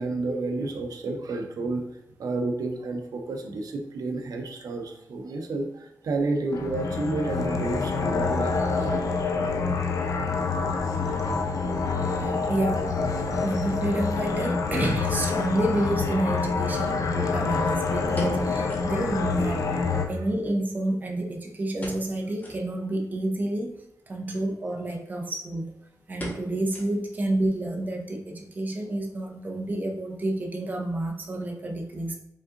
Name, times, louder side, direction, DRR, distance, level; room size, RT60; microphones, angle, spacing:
voice 1, 0.0-1.8 2.2-8.6 10.6-10.7 13.3-13.5 16.6-17.0 20.0-20.3, right 2 dB, 70° right, 3 dB, 0.6 m, -31 dB
sound 1, 6.5-20.1, left 4 dB, 60° left, 0.6 m, -27 dB
voice 2, 12.2-12.9 13.4-19.6 20.1-23.8 24.1-25.7 26.1-32.2, right 1 dB, 25° right, 2 dB, 0.6 m, -29 dB
sound 2, 17.7-19.0 19.3-19.4 19.7-19.8 20.4-21.3 21.8-22.1 22.4-22.7 23.2-23.3 24.2-24.5 24.9-25.0 25.3-25.6 26.2-27.3 27.6-27.7 28.2-28.6 28.9-29.0, left 1 dB, 25° left, 1.2 m, -40 dB
5.3 x 3.7 x 2.5 m, 0.84 s
wide cardioid pair, 130°, 6 cm